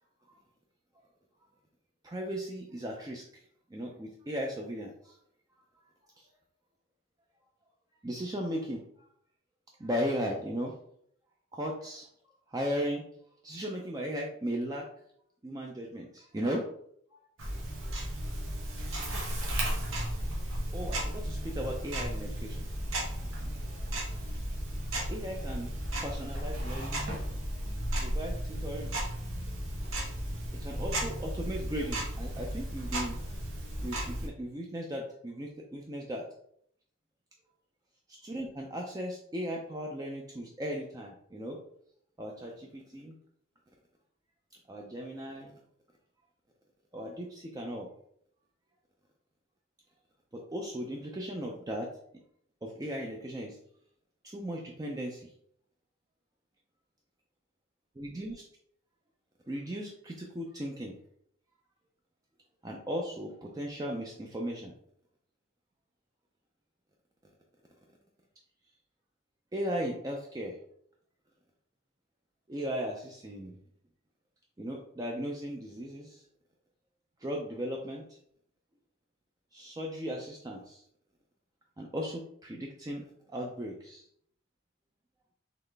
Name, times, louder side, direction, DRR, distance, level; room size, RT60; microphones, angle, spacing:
voice 1, 2.0-3.2 3.7-5.1 6.2-6.3 8.0-9.1 9.8-10.7 11.5-12.1 12.5-13.0 13.4-14.9 15.4-16.6 17.1-17.6 20.7-22.7 25.1-25.7 26.0-27.0 28.0-28.9 30.6-33.2 33.8-36.3 38.2-41.6 42.2-43.1 44.7-45.5 46.9-47.9 50.3-51.9 52.6-53.6 54.2-55.3 58.0-58.4 59.5-60.9 62.6-64.7 69.5-70.6 72.5-73.6 74.6-76.2 77.2-78.0 79.5-80.8 81.8-83.0 83.3-84.0, equal, 20° right, 0 dB, 0.4 m, -37 dB
Tick-tock, 17.4-34.3, right 1 dB, 75° right, 1.2 m, -34 dB
4.0 x 3.1 x 3.3 m, 0.67 s
head